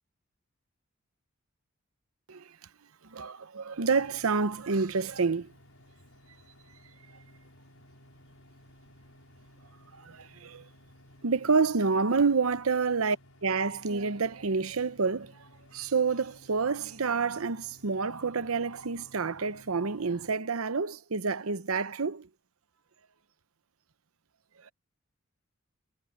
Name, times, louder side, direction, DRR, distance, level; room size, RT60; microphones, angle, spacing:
voice 1, 3.1-5.5 10.0-10.6 11.2-13.2 13.4-15.3 15.7-22.3, right 4 dB, 85° right, 0.8 m, -28 dB
sound 1, 3.8-20.3, left 1 dB, 75° left, 6.0 m, -57 dB
head